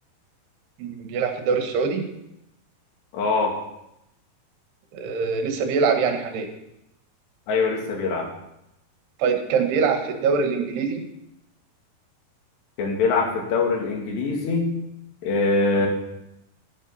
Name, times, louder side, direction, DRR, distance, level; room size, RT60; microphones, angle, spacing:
voice 1, 0.8-2.0 4.9-6.5 9.2-11.1 15.8-15.9, right 5 dB, 80° right, 5 dB, 3.5 m, -23 dB
voice 2, 3.1-3.6 7.5-8.3 12.8-14.7 15.2-15.9, left 3 dB, 80° left, 1 dB, 4.4 m, -23 dB
13.0 x 11.0 x 5.6 m, 0.85 s
omnidirectional pair, 4.8 m